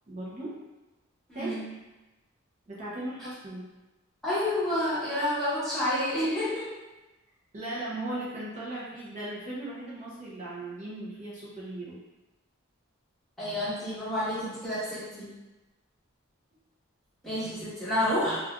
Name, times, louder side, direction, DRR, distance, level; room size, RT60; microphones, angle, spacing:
voice 1, 0.1-0.5 1.3-1.5 2.7-3.6 7.5-12.0, right 1 dB, 35° right, -8 dB, 0.6 m, -37 dB
voice 2, 4.2-6.7 13.4-15.3 17.2-18.4, left 1 dB, 5° left, -13 dB, 1.1 m, -29 dB
3.1 x 2.3 x 2.3 m, 1.1 s
head